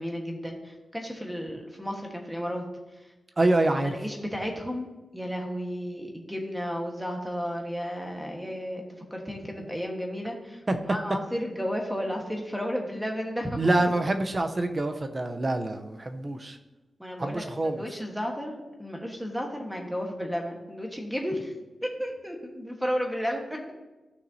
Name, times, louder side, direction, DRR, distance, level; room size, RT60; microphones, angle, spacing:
voice 1, 0.0-2.6 3.0-3.1 3.8-13.8 17.0-17.4 17.7-21.5 21.8-23.6, equal, ahead, 1 dB, 1.3 m, -33 dB
voice 2, 3.4-3.9 10.7-10.8 13.6-16.6 17.2-17.8, right 2 dB, 25° right, 6 dB, 0.7 m, -26 dB
14.5 x 6.2 x 2.7 m, 1.1 s
wide cardioid pair, 150°, 0 cm